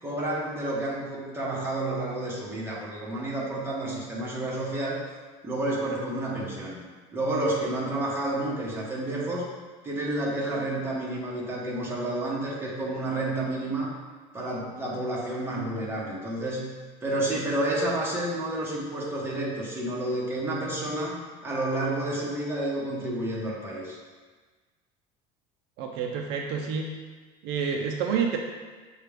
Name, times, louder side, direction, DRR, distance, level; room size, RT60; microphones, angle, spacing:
voice 1, 0.0-5.0 5.4-6.8 7.1-9.4 9.8-13.9 14.3-16.7 17.0-21.2 21.4-24.0, right 1 dB, 15° right, -5 dB, 1.1 m, -30 dB
voice 2, 25.8-26.9 27.4-28.4, right 6 dB, 70° right, 2 dB, 0.5 m, -28 dB
6.6 x 2.4 x 3.3 m, 1.4 s
cardioid pair, 125°, 17 cm